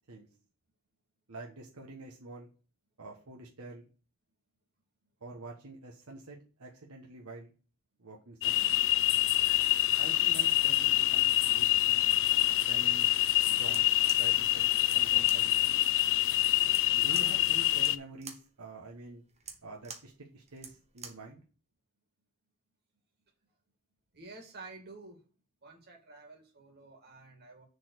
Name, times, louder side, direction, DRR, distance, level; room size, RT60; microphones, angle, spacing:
voice 1, 1.3-2.5 3.0-3.9 5.2-7.5 8.0-8.7 10.0-12.1 12.6-13.1 13.5-13.9 14.2-15.8 16.9-19.2 19.6-21.4, right 2 dB, 80° right, -1 dB, 1.3 m, -47 dB
sound 1, 8.4-18.0, left 15 dB, 60° left, 0.4 m, -26 dB
sound 2, 13.6-21.3, right 6 dB, 30° right, 1.1 m, -49 dB
voice 2, 24.1-25.2 25.6-27.7, right 3 dB, 50° right, 1 dB, 2.3 m, -50 dB
6.8 x 4.2 x 6.6 m, 0.36 s
head